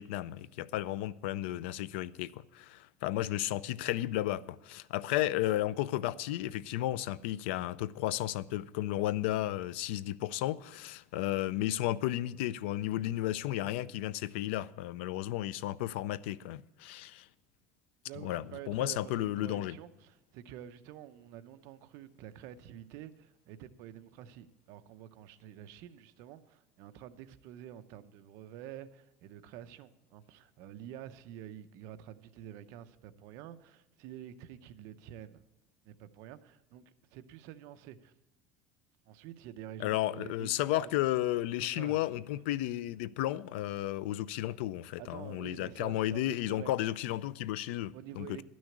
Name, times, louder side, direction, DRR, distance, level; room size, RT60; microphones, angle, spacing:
voice 1, 0.0-17.3 18.2-19.8 39.8-48.4, left 14 dB, 85° left, 0.4 m, -33 dB
voice 2, 18.1-35.4 35.8-38.1 39.1-40.9 41.6-42.1 45.0-46.8 47.9-48.4, right 11 dB, 55° right, 0.7 m, -48 dB
12.0 x 6.3 x 8.4 m
cardioid pair, 165°, 6 cm